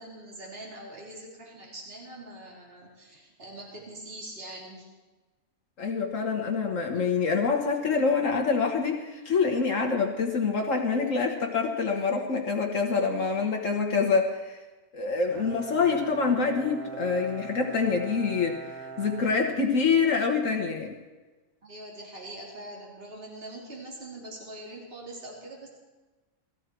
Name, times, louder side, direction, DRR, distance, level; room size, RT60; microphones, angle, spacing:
voice 1, 0.0-4.9 21.6-25.7, right 1 dB, 45° right, -3 dB, 3.2 m, -43 dB
voice 2, 5.8-14.6 14.9-20.9, left 5 dB, 70° left, 2 dB, 1.6 m, -26 dB
Bowed string instrument, 15.3-20.2, right 4 dB, 85° right, 1.8 m, -42 dB
18.0 x 14.5 x 4.5 m, 1.2 s
omnidirectional pair, 1.5 m